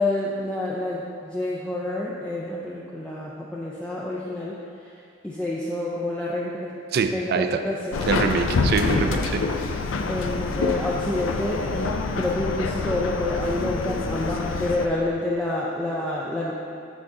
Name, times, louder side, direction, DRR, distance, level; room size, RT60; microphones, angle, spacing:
voice 1, 0.0-4.6 5.2-6.7 7.1-8.2 10.1-16.5, left 2 dB, 5° left, -6 dB, 0.4 m, -28 dB
voice 2, 6.9-7.6 8.1-9.5, right 5 dB, 55° right, 7 dB, 0.4 m, -24 dB
Subway metro underground, 7.9-14.9, left 3 dB, 90° left, 0.4 m, -26 dB
6.2 x 5.7 x 3.7 m, 2.5 s
head